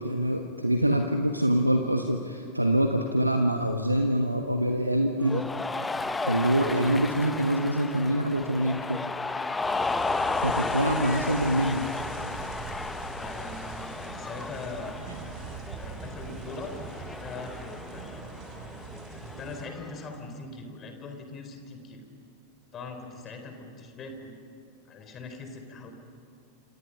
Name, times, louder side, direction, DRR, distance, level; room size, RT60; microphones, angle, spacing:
voice 1, 0.0-5.4 6.3-9.0 10.4-11.9, right 1 dB, 85° right, 5 dB, 1.2 m, -25 dB
Cheering, 5.2-20.1, left 3 dB, 10° left, 0.8 m, -34 dB
sound 1, 9.6-19.6, right 5 dB, 40° right, 5.4 m, -42 dB
voice 2, 13.1-15.0 15.8-18.3 19.2-22.0 22.7-24.4 24.9-25.9, left 3 dB, 25° left, 5 dB, 4.2 m, -41 dB
28.0 x 27.0 x 5.9 m, 2.7 s
figure-of-eight pair, 90°, 0 cm